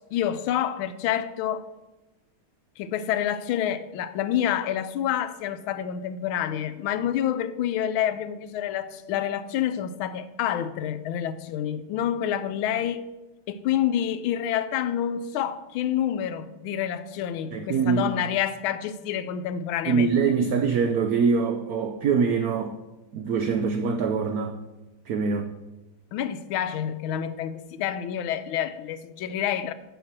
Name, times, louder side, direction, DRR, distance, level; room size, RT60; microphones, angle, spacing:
voice 1, 0.0-1.7 2.8-13.1 13.5-20.1 26.1-29.7, left 10 dB, 90° left, 1.5 m, -28 dB
voice 2, 17.5-18.2 19.9-22.7 23.1-24.6 25.1-25.5, right 5 dB, 70° right, 0.9 m, -24 dB
7.1 x 5.9 x 7.3 m
omnidirectional pair, 2.2 m